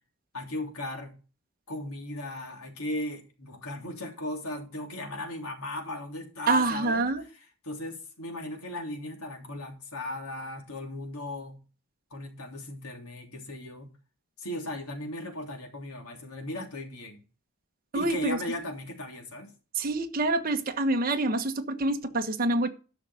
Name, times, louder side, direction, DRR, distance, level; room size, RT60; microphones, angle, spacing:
voice 1, 0.3-1.2 1.7-7.1 7.6-11.6 12.1-13.9 14.4-17.2 17.9-19.5, left 1 dB, 80° left, 3.2 m, -37 dB
voice 2, 6.5-7.2 17.9-18.4 19.7-22.7, right 2 dB, 40° right, 1.3 m, -26 dB
11.5 x 6.3 x 5.6 m
head